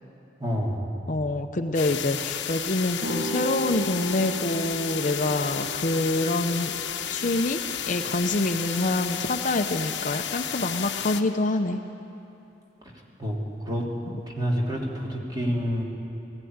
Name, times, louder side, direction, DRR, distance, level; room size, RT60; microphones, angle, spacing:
voice 1, 0.4-0.9 13.2-13.4 13.7-13.8 14.3-15.8, equal, 25° right, -2 dB, 2.9 m, -27 dB
voice 2, 1.1-6.7 7.1-11.8, left 2 dB, 45° left, 7 dB, 0.7 m, -26 dB
sound 1, 1.7-11.2, left 9 dB, 85° left, 1.0 m, -32 dB
sound 2, 3.0-8.7, right 2 dB, 40° right, 2.6 m, -37 dB
19.0 x 15.0 x 9.5 m, 2.9 s
head